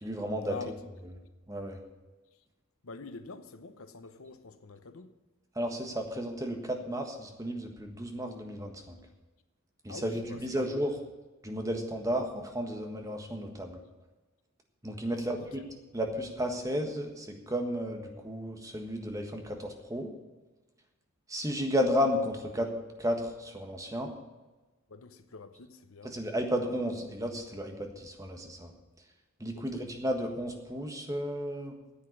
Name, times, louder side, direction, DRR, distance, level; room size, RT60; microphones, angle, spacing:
voice 1, 0.0-0.5 1.5-1.8 5.5-9.0 9.8-10.9 11.4-13.8 14.8-15.6 15.9-20.1 21.3-22.7 23.0-24.1 26.0-28.7 29.4-31.8, equal, 15° right, 1.5 m, -33 dB
voice 2, 2.8-5.1 9.9-10.7 15.1-15.5 24.9-26.2 29.5-29.8, left 4 dB, 80° left, 0.9 m, -46 dB
9.9 x 7.9 x 9.5 m
head